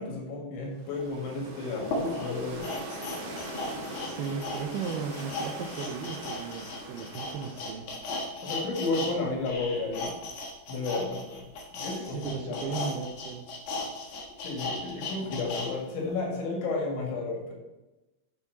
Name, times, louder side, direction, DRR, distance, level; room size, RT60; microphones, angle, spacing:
voice 1, 0.0-2.7 8.4-10.1 10.7-11.5 11.7-12.8 14.4-17.6, left 3 dB, 85° left, 0 dB, 4.4 m, -32 dB
sound 1, 0.7-7.8, right 1 dB, 60° right, 3.6 m, -41 dB
sound 2, 1.0-1.1 1.8-9.1 9.4-15.7 16.1-16.2, left 2 dB, 55° left, 2.5 m, -36 dB
voice 2, 4.0-7.9 12.0-13.5, right 6 dB, 80° right, 4 dB, 2.3 m, -36 dB
9.7 x 7.1 x 4.0 m, 1.0 s
omnidirectional pair, 5.2 m